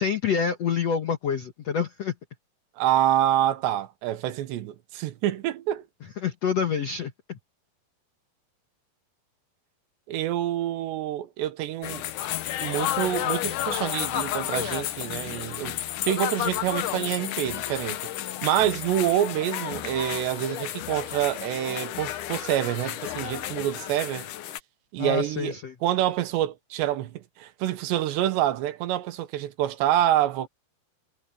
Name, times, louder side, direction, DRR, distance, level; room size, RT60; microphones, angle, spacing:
voice 1, 0.0-2.1 6.2-7.4 25.0-25.7, left 7 dB, 70° left, 1.6 m, -27 dB
voice 2, 2.8-5.9 10.1-12.0 12.6-24.3 24.9-25.6 25.8-30.5, right 12 dB, 80° right, 3.4 m, -27 dB
sound 1, 11.8-24.6, left 13 dB, 85° left, 1.7 m, -32 dB
omnidirectional pair, 5.1 m